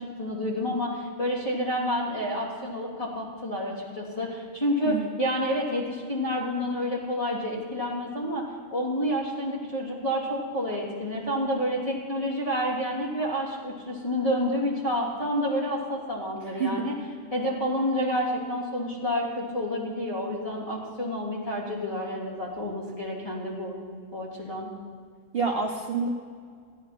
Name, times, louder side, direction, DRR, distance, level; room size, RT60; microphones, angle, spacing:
voice 1, 0.0-8.4 8.7-16.9 17.3-23.7 24.1-24.7, equal, 25° left, -5 dB, 3.1 m, -29 dB
voice 2, 25.3-26.1, right 4 dB, 50° right, 2 dB, 1.1 m, -27 dB
14.5 x 10.0 x 5.9 m, 2.1 s
omnidirectional pair, 1.3 m